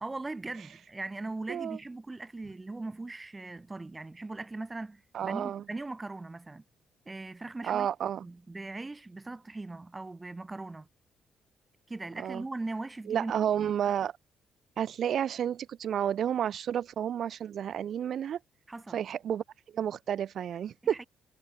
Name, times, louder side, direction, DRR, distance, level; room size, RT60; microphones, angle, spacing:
voice 1, 0.0-6.6 7.1-7.9 8.2-10.9 11.9-13.3 18.7-19.0 20.8-21.1, right 2 dB, 20° right, 0.8 m, -39 dB
voice 2, 5.1-5.6 7.6-8.2 12.2-12.4 13.1-14.1 14.8-18.4 18.9-19.4 19.7-21.0, right 9 dB, 65° right, 0.3 m, -31 dB
cardioid pair, 90°, 0 cm